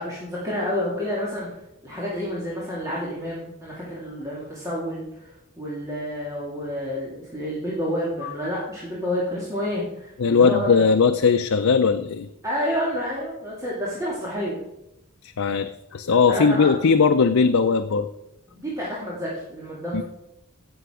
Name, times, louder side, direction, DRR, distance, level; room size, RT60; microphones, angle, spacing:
voice 1, 0.0-1.5 1.8-10.7 12.4-14.6 16.3-16.7 18.5-20.0, equal, 15° right, -6 dB, 2.3 m, -29 dB
voice 2, 10.2-12.3 15.2-18.1 19.9-20.0, left 5 dB, 75° left, 6 dB, 0.6 m, -19 dB
16.0 x 6.9 x 4.9 m, 0.92 s
head